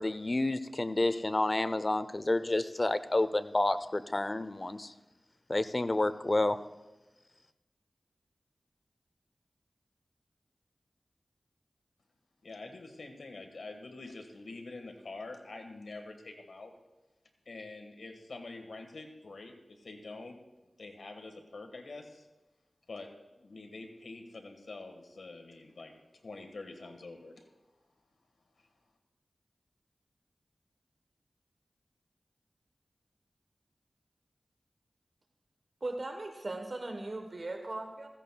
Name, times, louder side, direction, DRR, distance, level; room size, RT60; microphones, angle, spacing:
voice 1, 0.0-4.9 5.5-6.6, left 2 dB, 40° left, 12 dB, 0.6 m, -29 dB
voice 2, 12.4-16.7 17.4-20.4 20.8-22.3 22.9-23.1 23.4-25.9 26.2-27.5, left 3 dB, 85° left, 4 dB, 1.6 m, -46 dB
voice 3, 35.8-38.1, right 2 dB, 55° right, 5 dB, 1.1 m, -38 dB
15.5 x 15.5 x 2.3 m, 1.1 s
wide cardioid pair, 55°, 0 cm